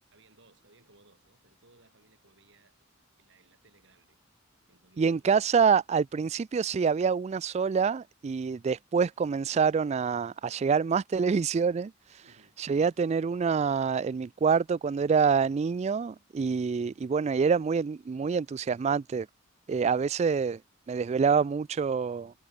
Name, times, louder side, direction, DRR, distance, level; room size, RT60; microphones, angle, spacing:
voice 1, 0.1-2.9 3.2-4.2 4.7-5.4 12.2-12.6, right 2 dB, 65° right, 6.3 m, -62 dB
voice 2, 5.0-12.2 12.6-19.3 19.7-20.6 20.9-22.3, right 6 dB, 35° right, 0.3 m, -26 dB
head